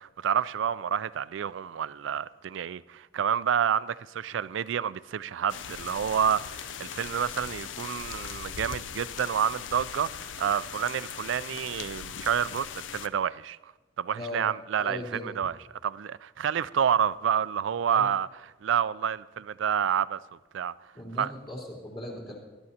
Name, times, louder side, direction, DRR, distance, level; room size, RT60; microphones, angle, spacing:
voice 1, 0.0-13.6 14.0-15.6 15.8-18.3 18.6-20.2 20.5-20.7 21.2-21.3, right 8 dB, 70° right, 0.3 m, -29 dB
sound 1, 5.5-13.1, left 8 dB, 70° left, 0.5 m, -39 dB
voice 2, 14.1-14.4 14.8-15.3 17.9-18.1 20.9-22.3, left 1 dB, 30° left, 3.4 m, -38 dB
19.5 x 12.0 x 2.8 m
head